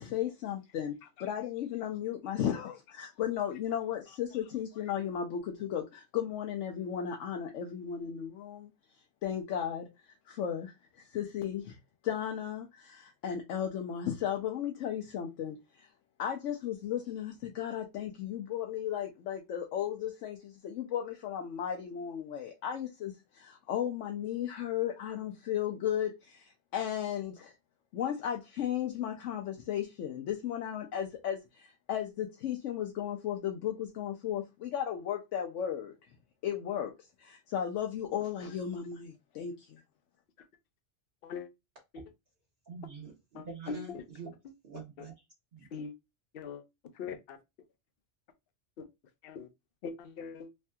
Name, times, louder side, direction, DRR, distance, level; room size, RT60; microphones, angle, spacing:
voice 1, 0.0-8.7 9.2-9.9 10.3-11.8 12.0-15.9 16.2-27.5 27.9-36.0 36.4-36.9 37.2-39.8, left 9 dB, 90° left, 1.0 m, -35 dB
voice 2, 42.7-44.3 44.6-45.1 45.5-45.7, right 4 dB, 50° right, 1.0 m, -45 dB
voice 3, 43.3-44.1 45.0-45.1 45.7-45.9 46.3-46.6 46.9-47.4 48.8-48.9 49.2-49.5 49.8-50.5, left 5 dB, 60° left, 0.7 m, -41 dB
3.2 x 2.7 x 2.2 m
omnidirectional pair, 1.2 m